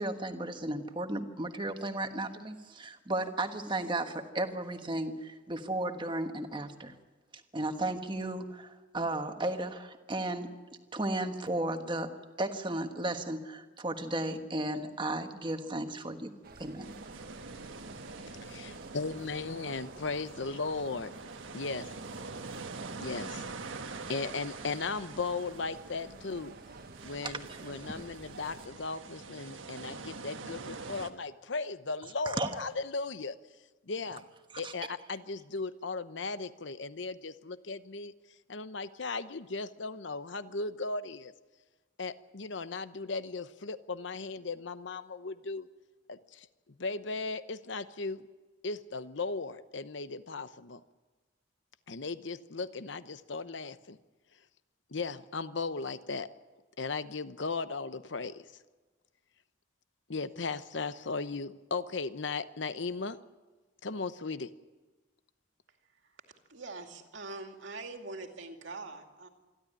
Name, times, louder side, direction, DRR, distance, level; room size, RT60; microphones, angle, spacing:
voice 1, 0.0-7.0 7.5-10.5 10.9-12.1 12.4-16.3 16.6-16.9 27.2-27.6 27.8-28.0 32.2-32.7 34.6-34.7, right 2 dB, 25° right, 6 dB, 1.3 m, -34 dB
sound 1, 16.4-28.7, right 2 dB, 50° right, 1.3 m, -51 dB
sound 2, 16.8-31.1, right 4 dB, 90° right, 1.4 m, -45 dB
voice 2, 18.3-21.1 21.5-21.9 23.0-23.4 24.1-26.5 27.0-33.3 33.9-34.3 34.6-38.1 38.5-41.3 42.0-45.7 46.1-46.5 46.8-48.2 48.6-50.8 51.9-54.0 54.9-56.3 56.8-58.4 60.1-63.2 63.8-64.5, left 4 dB, 65° left, 13 dB, 0.9 m, -37 dB
voice 3, 65.9-66.2 66.5-69.3, right 3 dB, 70° right, 4 dB, 2.3 m, -43 dB
26.5 x 12.0 x 9.9 m, 1.2 s
head